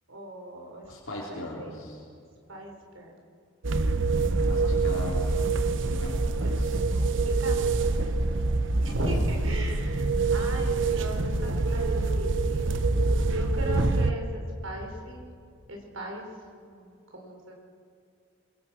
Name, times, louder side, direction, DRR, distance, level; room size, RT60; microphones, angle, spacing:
voice 1, 0.1-1.7 2.5-3.2 4.4-4.6 7.2-7.6 8.8-13.0 13.3-15.2 15.7-16.3 16.6-17.5, right 1 dB, 80° right, 1 dB, 4.8 m, -38 dB
voice 2, 0.9-2.1 4.5-6.8 8.0-8.1, left 1 dB, 75° left, -5 dB, 4.0 m, -40 dB
sound 1, 3.6-14.1, right 3 dB, 60° right, 1.0 m, -25 dB
26.5 x 23.0 x 6.2 m, 2.4 s
head